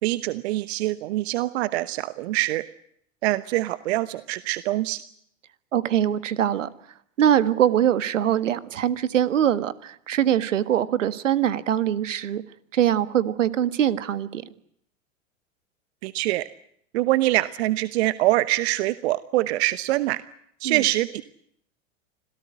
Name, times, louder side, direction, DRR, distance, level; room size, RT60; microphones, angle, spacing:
voice 1, 0.0-2.6 3.2-5.0 16.0-16.5 16.9-20.2 20.6-21.2, right 17 dB, 55° right, 16 dB, 1.1 m, -24 dB
voice 2, 5.7-6.7 7.2-12.4 12.7-14.4 20.6-20.8, right 10 dB, 70° right, 15 dB, 1.6 m, -22 dB
27.0 x 17.5 x 9.4 m, 0.69 s
figure-of-eight pair, 95°, 39 cm